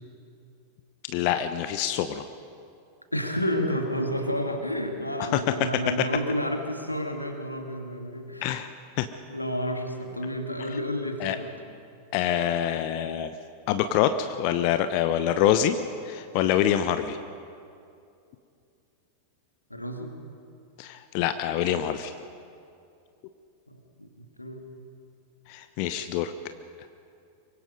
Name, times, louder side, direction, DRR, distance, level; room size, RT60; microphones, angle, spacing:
voice 1, 1.1-2.3 5.3-5.4 6.0-6.1 8.4-8.7 9.0-9.1 11.2-11.4 12.1-13.3 13.7-15.8 16.0-17.2 20.8-22.1 25.5-26.3 26.8-26.9, left 10 dB, 45° left, 10 dB, 0.9 m, -25 dB
voice 2, 3.1-8.7 9.3-11.5 19.7-20.1 24.0-24.6, equal, 85° left, 3 dB, 2.3 m, -30 dB
24.0 x 24.0 x 5.4 m, 2.5 s
figure-of-eight pair, 90°, 0 cm